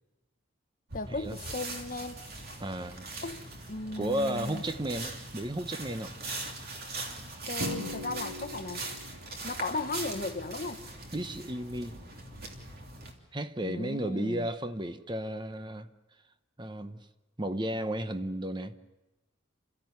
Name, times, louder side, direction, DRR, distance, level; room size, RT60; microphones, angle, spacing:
voice 1, 0.9-2.2 3.2-3.4 3.7-4.6 7.5-8.9 9.4-10.8 13.6-14.5, left 3 dB, 40° left, 1.0 m, -36 dB
sound 1, 0.9-13.1, right 2 dB, 45° right, 3.0 m, -41 dB
voice 2, 2.6-3.1 4.0-6.1 11.1-12.0 13.3-15.9 16.6-17.0 17.4-18.8, right 1 dB, 20° right, 0.8 m, -33 dB
Drum, 7.6-9.3, left 1 dB, 75° right, 3.0 m, -39 dB
28.5 x 14.5 x 9.5 m
head